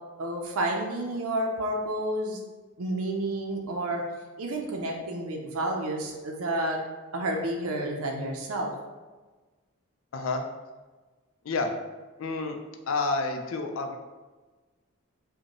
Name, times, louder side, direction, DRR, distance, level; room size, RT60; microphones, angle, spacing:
voice 1, 0.2-2.4 2.8-4.0 4.4-6.8 7.1-8.7, right 1 dB, 90° right, 0 dB, 0.5 m, -30 dB
voice 2, 10.1-10.4 11.4-11.7 12.2-12.6 12.9-14.0, left 3 dB, 70° left, 4 dB, 0.4 m, -29 dB
5.1 x 2.1 x 2.9 m, 1.3 s
head